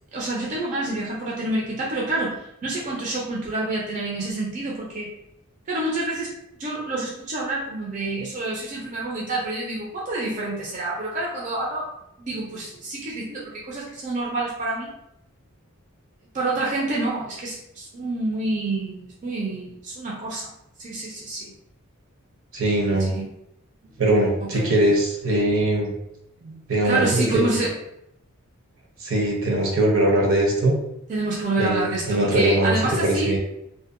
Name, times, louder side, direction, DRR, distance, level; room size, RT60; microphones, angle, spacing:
voice 1, 0.1-5.1 5.7-6.3 6.6-11.9 12.2-14.9 16.3-20.5 20.8-21.5 23.1-23.3 24.4-24.7 26.8-27.7 31.1-33.4, right 2 dB, 35° right, -4 dB, 0.4 m, -28 dB
voice 2, 22.5-23.1 24.0-25.9 26.4-27.5 29.0-30.8 31.6-32.7 33.0-33.4, right 1 dB, 70° right, -1 dB, 0.7 m, -21 dB
2.6 x 2.1 x 2.4 m, 0.79 s
head